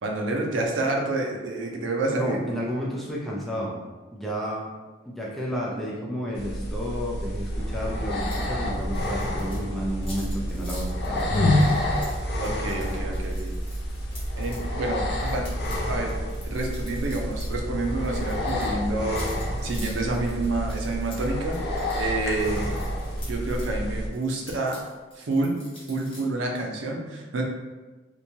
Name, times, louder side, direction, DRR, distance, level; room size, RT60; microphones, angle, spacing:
voice 1, 0.0-2.4 12.4-13.5 14.4-15.5 15.9-16.2 16.5-19.3 19.6-21.6 22.0-22.7 23.2-24.8 25.2-25.6 25.9-27.4, right 2 dB, 90° right, 1 dB, 0.5 m, -28 dB
voice 2, 2.1-3.7 4.1-4.6 5.1-11.3, equal, ahead, -5 dB, 0.4 m, -31 dB
sound 1, 6.4-24.1, equal, 55° left, 0.5 m, -29 dB
sound 2, 7.5-20.7, left 1 dB, 55° right, 1.0 m, -38 dB
sound 3, 8.2-8.5 8.7-14.6 15.1-17.6 17.8-23.7 24.1-26.2, left 1 dB, 30° left, 0.8 m, -46 dB
2.9 x 2.2 x 2.6 m, 1.3 s
head